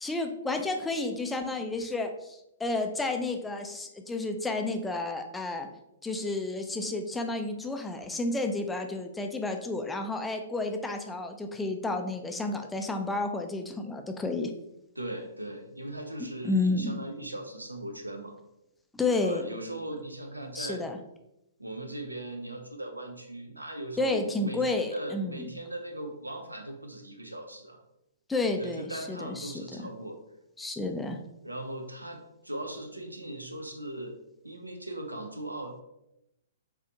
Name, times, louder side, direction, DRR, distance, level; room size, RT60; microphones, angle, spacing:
voice 1, 0.0-5.7 6.0-14.5 16.4-16.9 18.9-19.5 20.5-21.0 24.0-25.4 28.3-29.6 30.6-31.2, left 2 dB, 5° left, 4 dB, 0.3 m, -31 dB
voice 2, 15.0-18.4 19.1-20.8 21.6-27.8 28.4-30.2 31.4-34.2 34.4-35.8, right 1 dB, 85° right, 4 dB, 0.5 m, -39 dB
4.1 x 2.7 x 2.7 m, 0.86 s
figure-of-eight pair, 115°, 0 cm